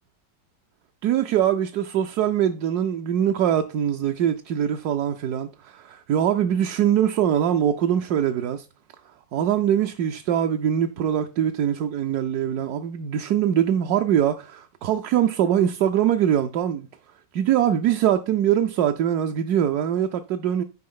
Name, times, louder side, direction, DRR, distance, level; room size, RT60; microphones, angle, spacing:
voice 1, 1.0-8.7 9.3-16.9 17.3-20.6, right 10 dB, 70° right, 1.0 m, -23 dB
9.4 x 5.0 x 3.7 m
omnidirectional pair, 2.0 m